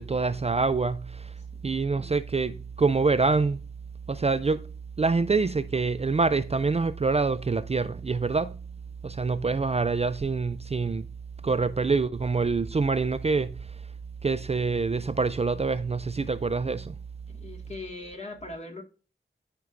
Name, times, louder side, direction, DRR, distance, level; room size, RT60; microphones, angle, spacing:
voice 1, 0.0-1.3 1.6-3.6 4.1-4.7 5.0-8.6 9.0-11.0 11.4-13.6 14.2-16.9, right 4 dB, 35° right, 0.4 m, -26 dB
voice 2, 17.3-18.8, left 2 dB, 35° left, 1.9 m, -40 dB
12.5 x 4.6 x 2.5 m
wide cardioid pair, 65°, 19 cm